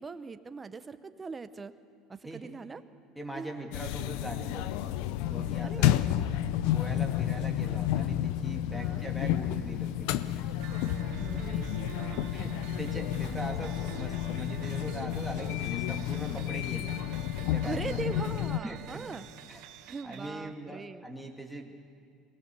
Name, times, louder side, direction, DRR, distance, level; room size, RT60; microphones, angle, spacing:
voice 1, 0.0-1.7 2.1-2.8 3.3-3.5 5.6-6.2 8.6-9.1 11.2-12.3 13.2-13.4 16.3-16.5 17.6-19.3 19.9-21.1, right 4 dB, 20° right, 11 dB, 0.8 m, -41 dB
voice 2, 3.2-5.0 5.3-5.9 6.4-10.5 12.3-16.9 17.5-18.0 18.6-19.0 19.5-19.6 20.0-21.9, right 1 dB, ahead, 3 dB, 2.1 m, -41 dB
sound 1, 3.7-18.6, left 12 dB, 75° left, 0.6 m, -31 dB
sound 2, 10.6-20.3, right 9 dB, 70° right, 1.5 m, -45 dB
23.0 x 18.5 x 6.9 m, 2.2 s
cardioid pair, 135°, 0 cm